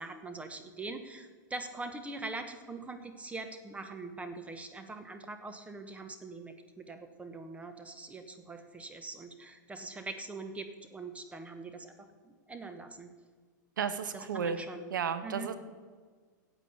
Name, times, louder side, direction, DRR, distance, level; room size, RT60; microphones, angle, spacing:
voice 1, 0.0-12.1 12.5-13.1 14.1-14.8 15.2-15.5, right 3 dB, 10° right, 7 dB, 1.0 m, -43 dB
voice 2, 13.8-14.6 14.9-15.6, right 7 dB, 80° right, 10 dB, 1.1 m, -33 dB
9.8 x 8.3 x 8.2 m, 1.6 s
hypercardioid pair, 110°, 10 cm